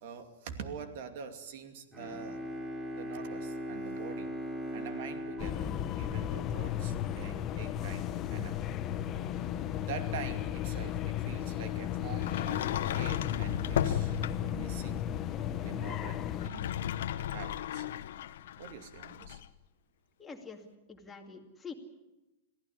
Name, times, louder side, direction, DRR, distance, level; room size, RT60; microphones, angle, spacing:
voice 1, 0.0-2.5 2.9-4.3 4.7-8.7 9.8-14.1 14.4-15.0 15.6-16.7 17.3-17.9 18.6-19.4, right 7 dB, 55° right, 8 dB, 2.5 m, -45 dB
Bowed string instrument, 1.9-6.9, equal, 10° right, 3.6 m, -40 dB
sound 1, 5.4-16.5, left 10 dB, 25° left, 1.0 m, -35 dB
Sliding door, 12.1-14.7 16.3-19.5, left 11 dB, 70° left, 1.0 m, -34 dB
voice 2, 20.2-20.6 20.9-21.7, left 5 dB, 10° left, 1 dB, 2.4 m, -45 dB
22.5 x 15.5 x 9.8 m, 1.0 s
supercardioid pair, 155°, 0 cm